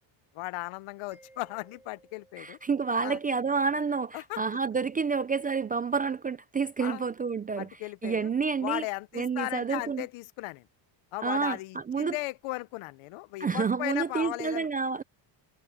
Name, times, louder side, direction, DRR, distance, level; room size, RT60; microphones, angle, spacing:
voice 1, 0.3-2.6 3.0-3.2 4.1-4.4 6.8-7.0 7.6-8.3 8.6-10.7 11.1-14.7, left 21 dB, 75° left, 0.9 m, -36 dB
Mallet percussion, 1.1-3.7, right 2 dB, 5° right, 2.8 m, -60 dB
voice 2, 2.4-7.7 8.0-8.8 9.1-10.0 11.2-12.2 13.4-15.0, right 5 dB, 20° right, 0.3 m, -29 dB
cardioid pair, 125°, 50 cm